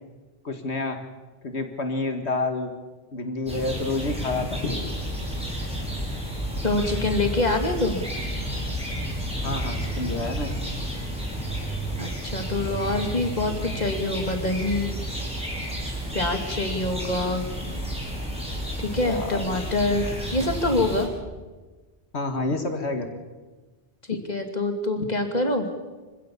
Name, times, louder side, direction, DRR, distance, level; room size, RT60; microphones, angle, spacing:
voice 1, 0.4-1.0 1.4-2.7 3.1-4.9 9.4-10.5 19.0-19.7 22.1-23.2 25.0-25.1, left 2 dB, 80° left, 6 dB, 2.1 m, -29 dB
sound 1, 3.5-21.1, equal, 5° right, 5.6 m, -31 dB
voice 2, 6.6-8.0 12.0-15.0 16.1-17.4 18.8-21.1 24.1-25.7, left 2 dB, 40° left, 5 dB, 2.6 m, -25 dB
25.5 x 16.5 x 7.3 m, 1.3 s
omnidirectional pair, 1.1 m